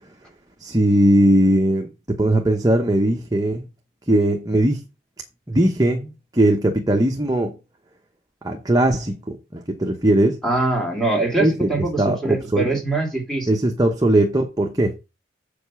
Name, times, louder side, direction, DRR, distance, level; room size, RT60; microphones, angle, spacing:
voice 1, 0.6-3.7 4.1-4.8 5.5-7.6 8.4-10.4 11.4-12.7 13.5-14.9, right 1 dB, 20° right, 0.9 m, -19 dB
voice 2, 10.4-13.5, right 2 dB, ahead, 2.6 m, -23 dB
7.6 x 5.2 x 6.2 m
head